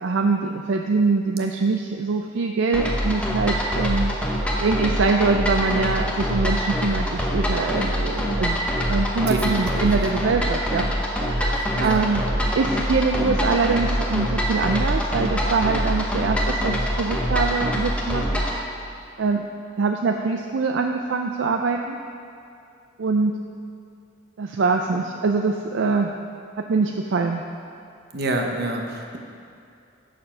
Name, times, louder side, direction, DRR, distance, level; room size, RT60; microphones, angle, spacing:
voice 1, 0.0-4.1 4.6-8.6 8.9-12.2 12.5-18.4 19.2-19.4 19.8-22.0 23.0-23.4 24.4-26.1 26.6-27.4, right 4 dB, 70° right, 3 dB, 0.4 m, -23 dB
sound 1, 2.7-18.6, equal, 5° left, 0.9 m, -24 dB
voice 2, 9.3-10.2 11.5-12.0 28.1-29.2, right 1 dB, 55° right, 2 dB, 0.9 m, -28 dB
7.6 x 6.7 x 5.7 m, 2.5 s
head